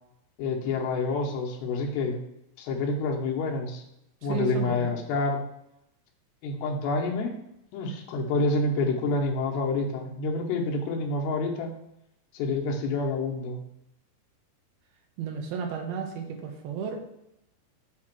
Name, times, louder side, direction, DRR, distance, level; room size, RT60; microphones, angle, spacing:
voice 1, 0.4-2.2 2.6-3.8 4.2-5.4 6.4-7.3 7.7-11.7 12.3-13.6, left 3 dB, 80° left, 0 dB, 3.1 m, -28 dB
voice 2, 4.2-4.9 15.2-17.1, right 6 dB, 75° right, 2 dB, 2.6 m, -33 dB
7.7 x 3.0 x 6.0 m, 0.82 s
omnidirectional pair, 4.8 m